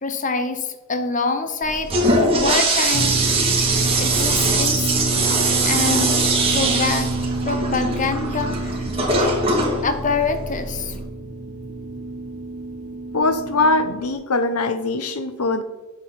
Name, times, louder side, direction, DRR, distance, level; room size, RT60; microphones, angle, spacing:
voice 1, 0.0-3.2 4.0-5.2 5.6-6.2 6.5-7.1 7.4-8.8 9.8-11.0, left 4 dB, 35° left, 7 dB, 0.9 m, -25 dB
Toilet flush, 1.6-11.0, right 2 dB, 25° right, 2.3 m, -21 dB
sound 1, 2.9-14.1, right 3 dB, 90° right, 1.6 m, -28 dB
voice 2, 13.1-15.6, left 2 dB, 85° left, 10 dB, 0.9 m, -21 dB
9.5 x 7.3 x 4.1 m, 1.1 s
head